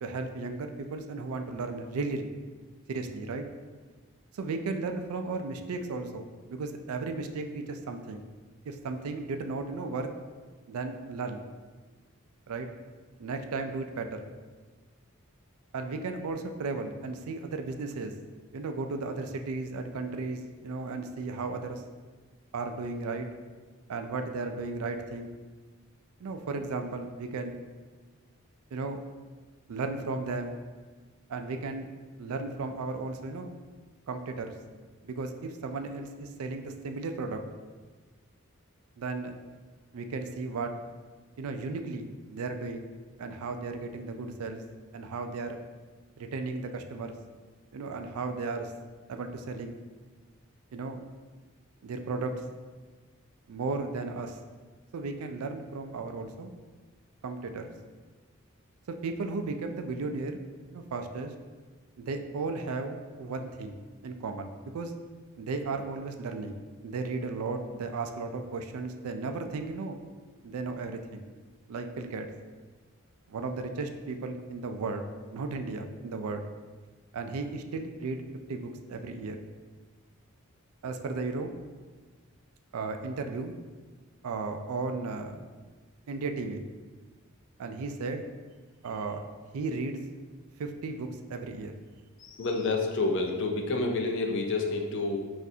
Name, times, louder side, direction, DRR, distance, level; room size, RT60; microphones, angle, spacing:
voice 1, 0.0-2.3 2.9-3.5 4.3-8.2 8.6-10.1 10.7-11.4 12.5-12.7 13.2-14.3 15.7-18.1 18.5-21.8 22.5-23.3 23.9-25.3 26.2-27.6 28.7-29.0 29.7-30.6 31.3-31.9 32.2-33.5 34.1-34.5 35.0-37.4 39.0-39.4 39.9-40.7 41.4-42.9 43.2-44.6 44.9-45.6 46.2-47.1 47.7-48.7 49.1-49.8 50.7-51.0 51.8-52.3 53.5-54.4 54.9-56.5 57.2-57.7 58.9-60.4 60.7-61.3 62.0-63.8 64.0-64.9 65.4-70.0 70.4-71.2 71.7-72.3 73.3-76.4 77.1-78.2 78.5-79.4 80.8-81.5 82.7-83.5 84.2-85.4 86.1-86.6 87.6-88.3 88.8-89.2 89.5-90.0 90.6-91.7, right 3 dB, 80° right, 6 dB, 0.4 m, -35 dB
voice 2, 92.2-95.2, left 3 dB, 55° left, 3 dB, 0.5 m, -29 dB
6.0 x 2.5 x 2.7 m, 1.4 s
head